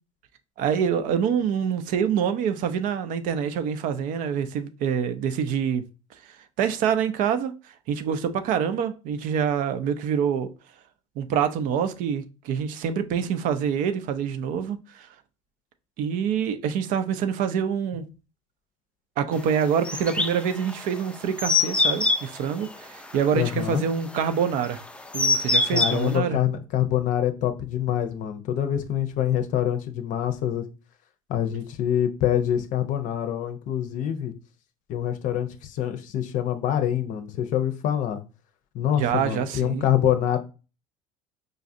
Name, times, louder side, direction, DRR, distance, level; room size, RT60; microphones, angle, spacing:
voice 1, 0.6-5.8 6.2-7.5 7.9-10.5 11.2-15.1 16.0-18.0 19.2-24.8 25.1-26.4 39.0-39.8, right 7 dB, 60° right, 0.5 m, -26 dB
sound 1, 19.8-26.1, left 3 dB, 5° left, 0.4 m, -25 dB
voice 2, 23.3-23.8 25.7-30.6 31.3-34.3 34.9-38.2 38.7-40.4, left 10 dB, 55° left, 0.6 m, -25 dB
5.0 x 2.4 x 2.6 m
hypercardioid pair, 85°, 16 cm